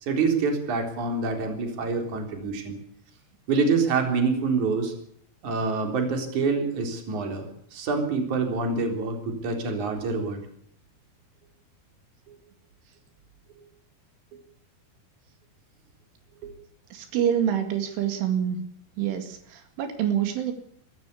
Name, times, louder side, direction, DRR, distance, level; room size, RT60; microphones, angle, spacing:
voice 1, 0.0-2.8 3.5-4.9 5.4-7.5 7.7-10.4 16.4-16.5, right 4 dB, 40° right, 4 dB, 4.7 m, -26 dB
voice 2, 16.9-18.6 19.0-20.5, right 9 dB, 80° right, 6 dB, 4.6 m, -26 dB
23.0 x 14.0 x 8.5 m, 0.68 s
omnidirectional pair, 5.5 m